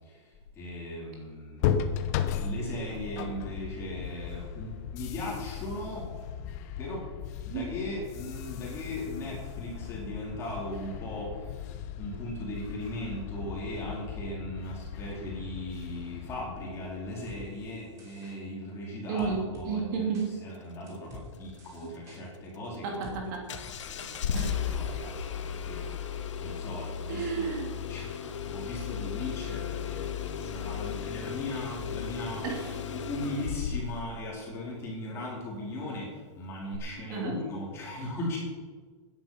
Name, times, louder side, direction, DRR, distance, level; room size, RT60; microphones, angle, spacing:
voice 1, 0.0-2.0 2.4-6.1 6.8-7.1 7.4-11.7 12.0-20.1 20.4-22.9 23.9-27.5 27.9-32.4 32.9-38.4, left 1 dB, 15° left, -3 dB, 3.9 m, -38 dB
sound 1, 1.6-17.3, left 8 dB, 30° left, 0.9 m, -36 dB
sound 2, 17.3-17.4 18.0-18.3 19.2-19.7 20.1-20.3 20.9-21.3 21.6-22.2 23.0-23.2 23.5-23.6 24.0-24.4 24.7-24.8, equal, 20° right, 3.1 m, -47 dB
voice 2, 19.1-20.3 21.8-21.9 22.8-23.5 24.3-24.6 27.1-27.7 32.4-32.8 37.1-37.4, right 5 dB, 40° right, 0 dB, 3.1 m, -32 dB
Engine starting, 23.5-34.1 36.7-36.8, left 7 dB, 75° left, 1.7 m, -35 dB
15.5 x 10.5 x 5.5 m, 1.5 s
supercardioid pair, 175°, 16 cm